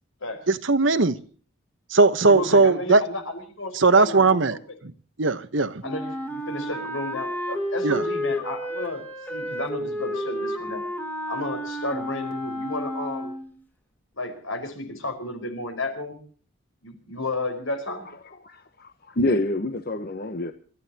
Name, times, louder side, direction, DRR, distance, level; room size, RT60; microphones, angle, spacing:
voice 1, 0.5-1.2 1.9-3.0 3.7-4.6 4.8-4.9 5.2-5.8 7.8-8.0, right 3 dB, 70° right, 1.1 m, -19 dB
voice 2, 2.3-4.6 5.8-9.0 9.3-10.8 11.3-13.3 14.2-16.2 16.8-18.1, left 2 dB, 80° left, 5.0 m, -32 dB
Wind instrument woodwind instrument, 5.8-13.5, equal, 10° left, 1.9 m, -31 dB
voice 3, 18.0-20.5, left 1 dB, 45° left, 1.0 m, -28 dB
27.5 x 13.5 x 2.9 m
head